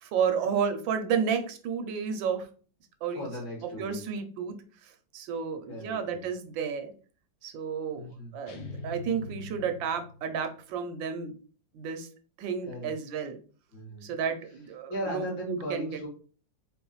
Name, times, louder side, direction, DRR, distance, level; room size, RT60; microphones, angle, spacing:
voice 1, 0.0-2.5 3.0-3.2 3.8-4.5 5.1-6.9 7.4-8.1 8.3-11.4 11.7-12.1 12.4-13.4 14.0-15.9, right 6 dB, 80° right, 7 dB, 1.4 m, -31 dB
voice 2, 3.1-4.0 5.7-6.3 7.9-8.4 12.6-12.9 13.7-14.1 14.9-16.1, equal, 90° left, -3 dB, 2.5 m, -37 dB
sound 1, 8.5-10.5, left 2 dB, 65° left, 1.4 m, -42 dB
3.9 x 3.8 x 3.0 m, 0.40 s
omnidirectional pair, 2.1 m